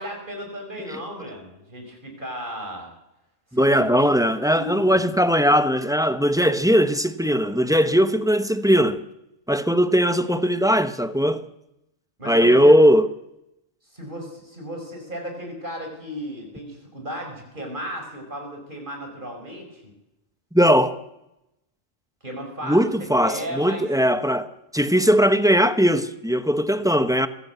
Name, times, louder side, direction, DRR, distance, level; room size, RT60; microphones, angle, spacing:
voice 1, 0.0-2.9 3.5-4.1 4.5-5.0 12.2-12.8 13.9-19.9 22.2-22.8 23.2-23.9, equal, 40° right, 5.8 m, -35 dB
voice 2, 3.5-9.0 9.5-11.5 12.3-13.1 20.5-21.0 22.7-27.3, equal, 5° right, 1.0 m, -19 dB
23.5 x 17.0 x 8.2 m
omnidirectional pair, 1.3 m